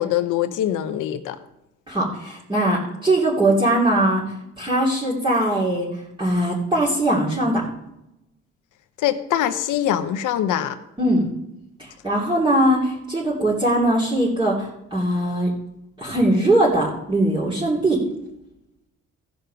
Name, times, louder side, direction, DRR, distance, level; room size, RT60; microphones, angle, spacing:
voice 1, 0.0-1.4 9.0-10.8, left 11 dB, 85° left, 9 dB, 0.9 m, -23 dB
voice 2, 1.9-5.9 6.2-7.6 11.0-11.3 11.8-15.5 16.0-18.0, right 1 dB, 15° right, -7 dB, 2.9 m, -21 dB
15.5 x 5.3 x 5.7 m, 0.87 s
cardioid pair, 90°, 30 cm